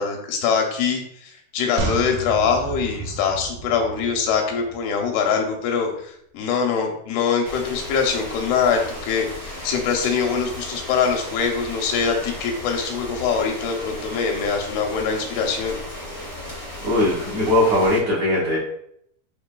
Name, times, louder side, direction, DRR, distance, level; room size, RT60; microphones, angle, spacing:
voice 1, 0.0-15.8, left 6 dB, 85° left, 2 dB, 2.8 m, -23 dB
sound 1, 1.8-5.2 5.5-5.6, right 3 dB, 85° right, 2.6 m, -32 dB
sound 2, 7.4-18.0, left 1 dB, 45° left, 0.9 m, -35 dB
voice 2, 16.8-18.6, left 1 dB, 60° right, -8 dB, 2.0 m, -19 dB
6.8 x 2.9 x 2.2 m, 0.69 s
omnidirectional pair, 4.4 m